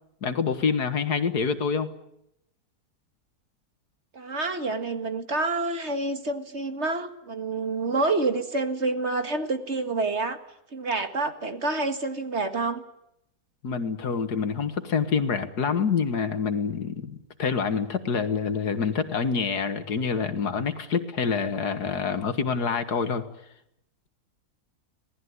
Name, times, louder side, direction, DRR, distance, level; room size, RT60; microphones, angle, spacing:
voice 1, 0.2-1.9 13.6-23.2, left 5 dB, 80° left, 10 dB, 2.2 m, -26 dB
voice 2, 4.1-10.4 10.7-12.8, right 3 dB, 45° right, 8 dB, 2.1 m, -28 dB
26.5 x 18.5 x 9.6 m, 0.80 s
omnidirectional pair, 1.7 m